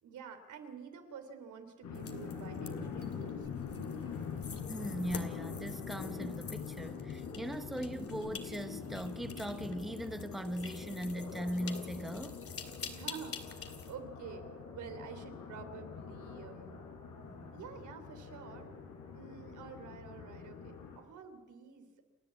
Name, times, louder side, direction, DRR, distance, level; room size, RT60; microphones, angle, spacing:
voice 1, 0.0-3.5 12.8-16.8 17.5-18.7 19.1-21.9, right 6 dB, 75° right, 3.2 m, -49 dB
sound 1, 1.8-21.0, left 6 dB, 85° left, 4.2 m, -44 dB
sound 2, 1.9-13.9, left 6 dB, 50° left, 2.5 m, -49 dB
voice 2, 4.7-12.4 17.3-17.5, equal, ahead, 0.9 m, -39 dB
29.5 x 10.5 x 8.3 m
cardioid pair, 90°, 30 cm